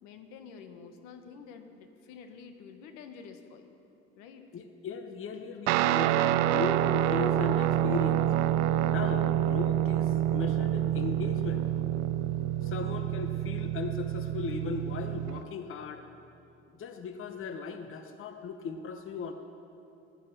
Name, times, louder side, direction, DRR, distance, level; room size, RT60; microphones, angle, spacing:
voice 1, 0.0-3.8 4.2-4.5, left 6 dB, 70° left, 7 dB, 1.4 m, -49 dB
voice 2, 4.5-8.3 8.9-11.6 12.6-16.0 16.7-19.3, left 5 dB, 40° left, 7 dB, 1.0 m, -37 dB
Guitar, 5.7-15.4, right 12 dB, 80° right, 0.6 m, -27 dB
14.0 x 10.5 x 6.8 m, 2.9 s
supercardioid pair, 85°, 32 cm